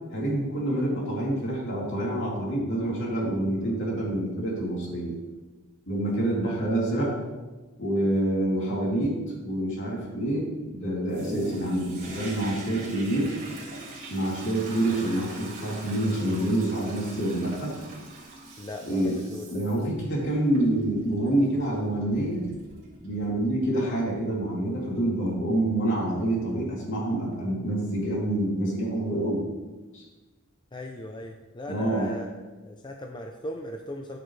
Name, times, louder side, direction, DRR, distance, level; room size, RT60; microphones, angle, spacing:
voice 1, 0.1-5.1 5.9-7.1 7.8-9.2 9.4-13.3 14.1-17.7 18.8-19.2 19.5-22.4 23.0-29.4 29.9-30.0 31.7-32.1, right 1 dB, 60° left, -4 dB, 3.1 m, -27 dB
Toilet flush, 11.1-23.5 24.1-24.2, right 2 dB, 45° right, 3.4 m, -42 dB
voice 2, 18.6-19.4 30.7-32.3 32.6-34.2, left 1 dB, 20° left, 3 dB, 0.5 m, -38 dB
13.5 x 6.7 x 3.3 m, 1.2 s
head